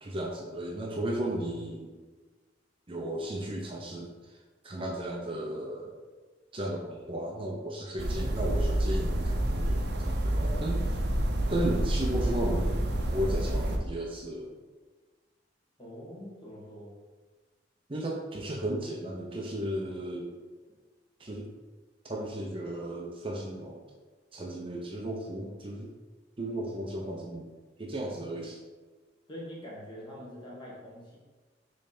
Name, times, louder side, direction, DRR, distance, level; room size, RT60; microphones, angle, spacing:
voice 1, 0.0-1.9 2.9-4.1 4.6-5.9 6.5-10.9 11.5-14.6 17.9-20.3 21.2-21.5 22.1-23.8 24.3-25.9 26.4-27.5 27.8-28.6, right 1 dB, 30° right, -1 dB, 0.7 m, -34 dB
sound 1, 8.0-13.8, right 1 dB, 65° right, 0.7 m, -28 dB
voice 2, 15.8-16.9 29.3-31.2, equal, 25° left, -5 dB, 1.9 m, -44 dB
6.8 x 3.3 x 4.2 m, 1.3 s
head